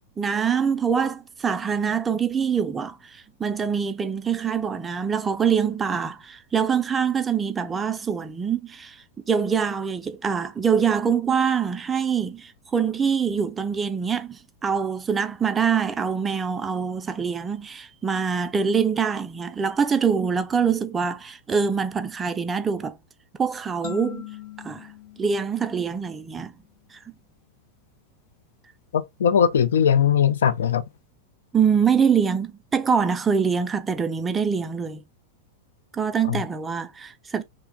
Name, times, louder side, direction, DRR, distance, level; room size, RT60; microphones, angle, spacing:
voice 1, 0.2-9.0 9.3-23.0 23.4-24.3 24.6-24.9 25.2-26.5 26.9-27.0 31.5-35.0 35.9-37.4, right 6 dB, 15° right, 0.4 m, -24 dB
sound 1, 23.8-26.5, left 13 dB, 40° left, 0.8 m, -41 dB
voice 2, 28.9-30.8 36.3-36.4, left 8 dB, 65° left, 0.3 m, -20 dB
3.0 x 2.2 x 3.5 m
figure-of-eight pair, 90°, 0 cm